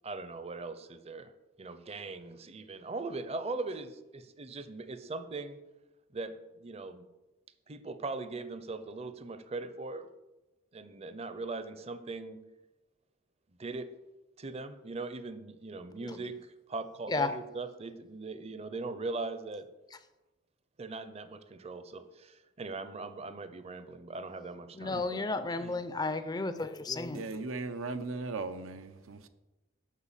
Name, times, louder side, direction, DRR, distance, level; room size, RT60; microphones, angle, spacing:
voice 1, 0.0-1.3 1.6-5.6 6.1-7.1 7.7-10.1 10.7-12.4 13.6-13.9 14.4-19.7 20.8-25.7, right 3 dB, 30° right, 0.6 m, -40 dB
voice 2, 16.0-16.4 17.0-17.4 19.9-20.0 24.7-27.3, left 3 dB, 20° left, 0.4 m, -33 dB
voice 3, 27.1-29.3, right 3 dB, 90° right, 0.7 m, -37 dB
8.3 x 5.7 x 7.3 m
head